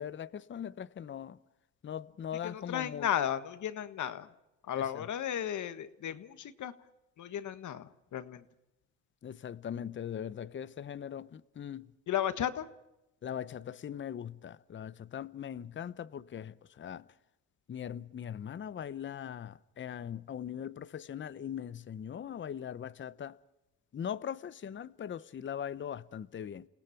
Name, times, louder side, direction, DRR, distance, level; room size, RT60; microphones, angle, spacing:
voice 1, 0.0-1.4 1.8-3.1 4.7-5.1 9.2-11.9 13.2-17.1 17.7-23.4 23.9-26.7, left 9 dB, 35° left, 0.8 m, -40 dB
voice 2, 2.4-4.3 4.7-6.7 7.2-8.4 12.1-12.7, left 10 dB, 55° left, 1.6 m, -34 dB
29.0 x 18.0 x 5.9 m
cardioid pair, 90°, 35 cm